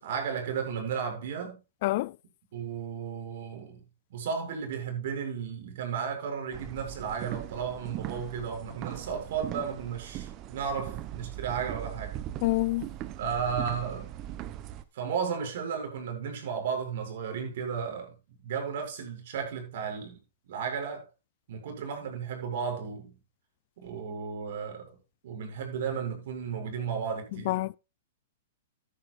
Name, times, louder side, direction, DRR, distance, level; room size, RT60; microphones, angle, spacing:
voice 1, 0.0-1.6 2.5-3.8 4.1-12.2 13.2-14.2 14.9-18.1 18.4-20.2 20.5-21.1 21.5-23.1 23.8-24.9 25.2-27.6, right 6 dB, 65° right, 7.1 m, -34 dB
voice 2, 1.8-2.1 12.4-12.9 27.5-27.8, left 20 dB, 55° left, 0.4 m, -27 dB
sound 1, 6.5-14.8, right 13 dB, 35° right, 1.1 m, -40 dB
14.0 x 11.0 x 2.6 m
hypercardioid pair, 130°, 0 cm